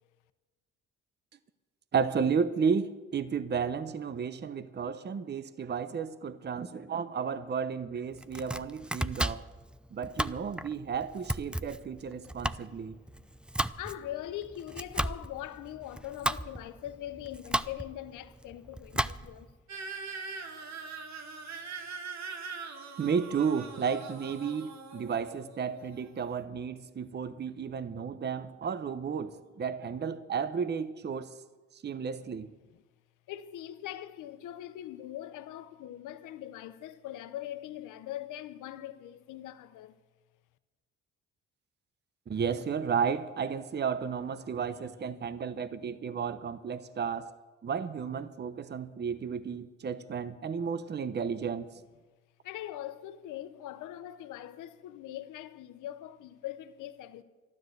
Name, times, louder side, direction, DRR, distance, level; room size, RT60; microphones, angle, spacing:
voice 1, 1.9-9.5 9.9-13.0 23.0-31.4 31.7-32.5 42.3-47.3 47.6-51.7, right 6 dB, 35° right, 0.8 m, -33 dB
Domestic sounds home sounds, 8.1-19.5, right 1 dB, 5° right, 0.4 m, -35 dB
voice 2, 13.8-19.5 32.6-32.8 33.3-40.0 52.4-57.2, left 12 dB, 90° left, 0.9 m, -42 dB
sound 1, 19.7-26.4, right 4 dB, 65° right, 1.9 m, -42 dB
12.5 x 12.0 x 8.0 m
cardioid pair, 90°, 30 cm